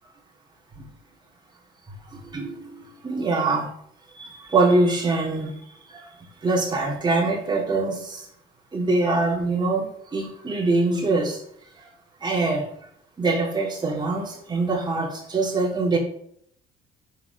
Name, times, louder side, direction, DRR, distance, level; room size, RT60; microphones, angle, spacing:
voice 1, 2.1-3.7 4.2-5.6 5.9-6.0 6.4-8.2 8.7-11.4 12.2-12.7 13.2-16.0, right 3 dB, 25° right, -1 dB, 3.1 m, -24 dB
7.2 x 4.8 x 6.7 m, 0.66 s
cardioid pair, 110°, 17 cm